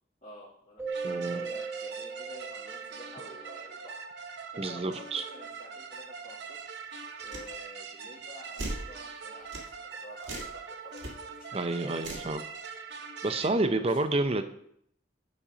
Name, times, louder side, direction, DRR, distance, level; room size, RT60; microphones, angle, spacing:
voice 1, 0.2-4.0 4.5-6.6 7.2-12.2 13.7-14.0, equal, 40° left, -8 dB, 2.1 m, -50 dB
Keyboard (musical), 0.8-3.5, right 5 dB, 10° right, 1.0 m, -38 dB
sound 1, 0.9-13.5, right 5 dB, 60° right, 0.8 m, -43 dB
voice 2, 1.0-1.4 4.6-5.2 11.5-12.4 13.2-14.4, right 2 dB, 30° right, 9 dB, 0.6 m, -29 dB
sound 2, 7.3-7.5 8.6-8.9 9.5-9.7 10.2-10.6 11.0-11.1 12.0-12.3, right 2 dB, 80° right, 1.8 m, -37 dB
10.0 x 4.2 x 5.0 m, 0.70 s
head